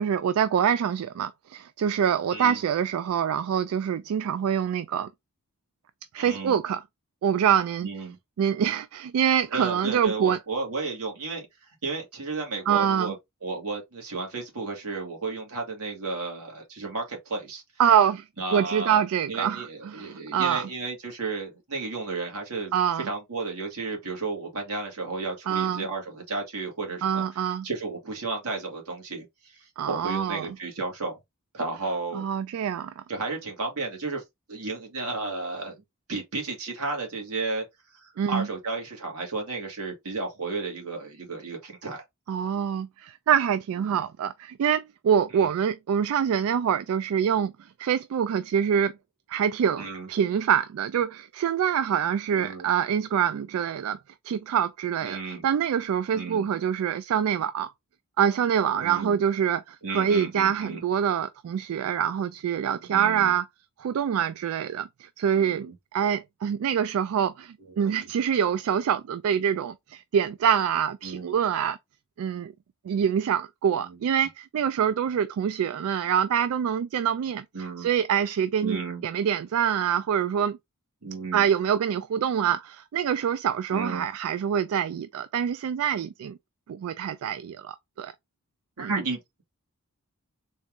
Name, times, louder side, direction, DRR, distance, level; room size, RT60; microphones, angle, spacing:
voice 1, 0.0-5.1 6.1-6.8 7.2-7.9 8.4-10.4 12.7-13.1 17.8-18.2 18.5-20.7 22.7-23.1 25.5-25.9 27.0-27.7 29.8-30.5 32.1-33.0 38.2-38.5 42.3-49.0 49.3-54.0 54.2-57.7 58.2-63.4 63.8-65.7 65.9-71.8 72.2-72.5 72.9-77.4 77.8-80.6 81.3-86.4 86.7-88.1 88.8-88.9, right 8 dB, 70° right, 0.3 m, -25 dB
voice 2, 6.1-6.6 7.8-8.2 9.5-11.5 11.8-13.2 13.4-17.6 18.4-19.0 19.3-22.7 23.0-29.6 29.9-31.2 31.5-32.3 33.1-34.2 34.5-35.8 36.1-37.6 37.9-42.0 43.8-44.0 45.3-45.5 49.7-50.1 52.3-52.7 55.0-55.5 56.1-56.5 58.8-59.1 59.8-60.8 62.9-63.3 65.3-65.7 67.7-68.1 71.0-71.4 73.7-74.0 77.5-77.9 78.6-79.1 81.0-81.5 83.7-84.0 88.8-89.2, right 3 dB, 85° right, 1.8 m, -33 dB
4.0 x 2.5 x 3.5 m
head